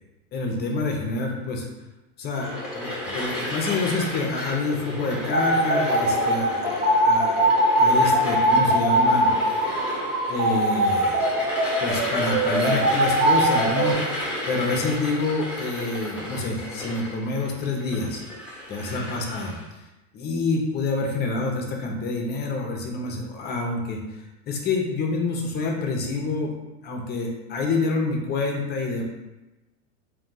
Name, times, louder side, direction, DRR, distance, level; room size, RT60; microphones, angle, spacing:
voice 1, 0.3-1.7 2.2-9.3 10.3-11.4 11.8-14.2 14.5-18.2 18.7-19.8 20.1-26.5 26.8-29.0, left 3 dB, 25° left, 1 dB, 0.5 m, -27 dB
sound 1, 2.3-19.6, left 1 dB, 5° right, 1.0 m, -32 dB
sound 2, 5.3-13.9, right 1 dB, 20° right, 0.7 m, -21 dB
3.7 x 2.7 x 3.7 m, 1.0 s
supercardioid pair, 130°, 43 cm